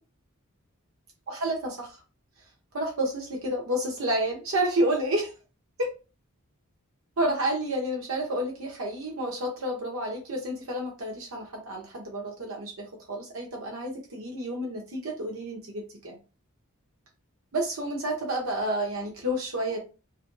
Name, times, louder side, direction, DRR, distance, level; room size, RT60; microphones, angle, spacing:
voice 1, 1.3-2.0 2.7-5.3 5.8-5.9 7.2-16.2 17.5-19.8, right 1 dB, 70° right, 0 dB, 0.7 m, -30 dB
2.9 x 2.5 x 2.5 m, 0.31 s
head